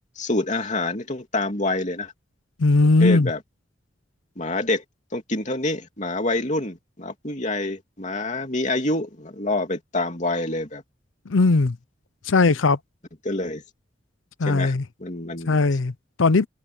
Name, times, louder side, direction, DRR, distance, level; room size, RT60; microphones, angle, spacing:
voice 1, 0.2-2.1 3.0-3.4 4.4-4.8 5.1-10.8 13.2-13.6 14.4-14.7 15.0-15.7, left 2 dB, 40° left, 3.1 m, -27 dB
voice 2, 2.6-3.3 11.3-11.8 12.3-12.8 14.4-14.8 15.5-16.5, left 3 dB, 85° left, 0.7 m, -19 dB
head